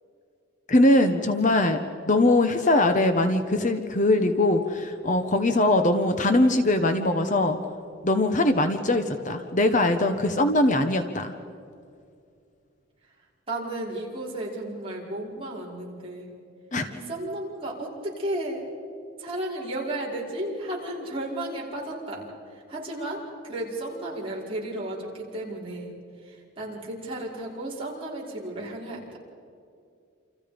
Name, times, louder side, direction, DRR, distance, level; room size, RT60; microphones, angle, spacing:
voice 1, 0.7-7.6 8.0-11.3 16.7-16.9, left 2 dB, 40° left, 7 dB, 1.1 m, -22 dB
voice 2, 13.5-16.3 16.9-18.6 19.2-22.3 22.7-25.9 26.2-29.2, right 1 dB, 25° right, -4 dB, 5.6 m, -33 dB
29.0 x 27.5 x 5.3 m, 2.4 s
head